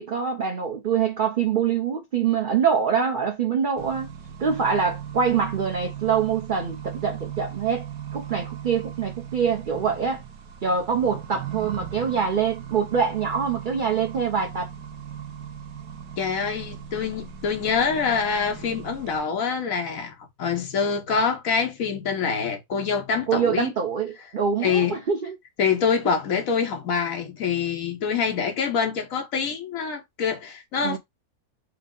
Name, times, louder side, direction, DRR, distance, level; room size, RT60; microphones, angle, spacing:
voice 1, 0.0-4.1 4.4-7.9 8.1-10.2 10.6-14.7 23.3-25.4 30.8-31.0, right 6 dB, 50° right, 0.6 m, -24 dB
Accelerating revving vroom, 3.8-19.2, right 9 dB, 70° right, 1.2 m, -38 dB
voice 2, 16.2-23.7 24.6-25.0 25.6-31.0, left 6 dB, 65° left, 1.3 m, -25 dB
4.8 x 2.0 x 3.6 m
omnidirectional pair, 1.6 m